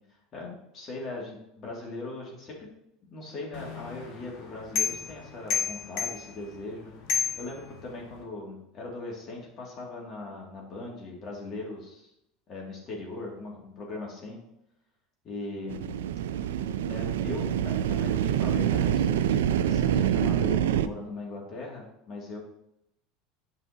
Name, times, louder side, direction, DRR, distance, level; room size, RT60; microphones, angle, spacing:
voice 1, 0.3-2.7 3.1-6.9 7.4-12.1 12.5-14.4 15.2-16.0 16.9-22.4, left 2 dB, 40° left, -2 dB, 2.2 m, -39 dB
sound 1, 3.5-8.2, left 7 dB, 60° left, 1.4 m, -33 dB
sound 2, 15.7-20.9, right 10 dB, 85° right, 0.3 m, -26 dB
8.0 x 5.5 x 2.8 m, 0.83 s
hypercardioid pair, 90°, 0 cm